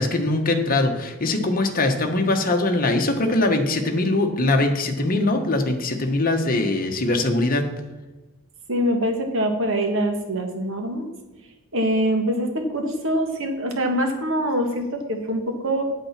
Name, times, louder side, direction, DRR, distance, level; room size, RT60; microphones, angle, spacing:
voice 1, 0.0-7.6, left 2 dB, 40° left, 4 dB, 1.3 m, -22 dB
voice 2, 8.7-11.1 11.7-15.8, right 1 dB, 60° right, 4 dB, 1.7 m, -24 dB
9.0 x 8.4 x 5.9 m, 1.1 s
head